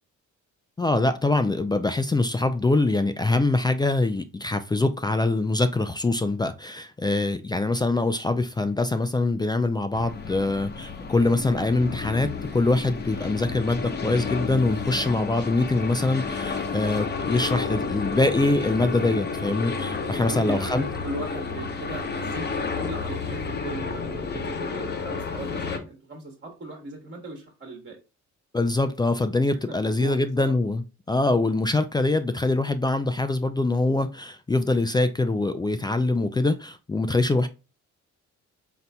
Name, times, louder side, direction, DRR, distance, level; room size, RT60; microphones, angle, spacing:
voice 1, 0.8-20.8 28.5-37.5, left 2 dB, 15° left, 0.3 m, -24 dB
sound 1, 9.9-25.8, left 5 dB, 35° left, 0.8 m, -31 dB
voice 2, 20.0-28.0 29.7-30.5, right 2 dB, 40° right, 1.3 m, -37 dB
4.2 x 3.9 x 2.2 m
cardioid pair, 90°, 30 cm